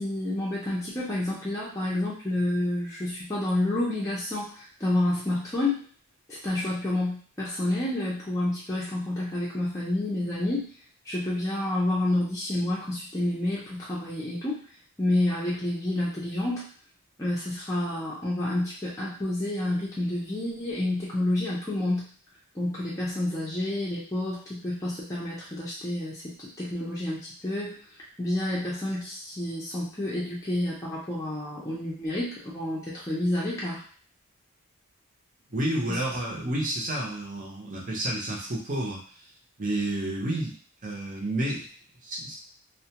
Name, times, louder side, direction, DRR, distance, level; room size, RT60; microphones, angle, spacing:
voice 1, 0.0-5.8 6.3-10.7 11.1-14.6 15.0-16.6 17.2-22.1 22.5-27.8 28.2-33.8 35.9-36.0, left 1 dB, 15° left, -7 dB, 0.6 m, -29 dB
voice 2, 35.5-39.0 39.6-40.6 40.8-41.7 42.0-42.3, right 1 dB, 35° right, -3 dB, 0.7 m, -30 dB
2.3 x 2.1 x 2.8 m, 0.44 s
head